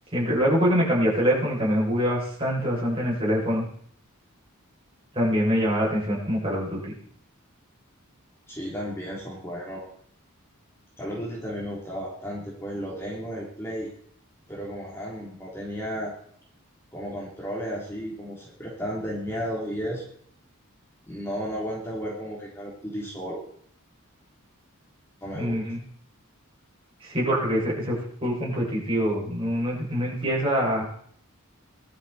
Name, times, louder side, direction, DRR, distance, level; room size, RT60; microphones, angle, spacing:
voice 1, 0.1-3.6 5.1-6.9 25.3-25.8 27.0-30.8, equal, 25° right, -5 dB, 7.2 m, -24 dB
voice 2, 8.5-9.8 11.0-13.9 14.5-16.1 16.9-20.1 21.1-23.4 25.2-25.6, equal, 10° left, -5 dB, 3.5 m, -33 dB
20.5 x 12.5 x 4.4 m, 0.64 s
head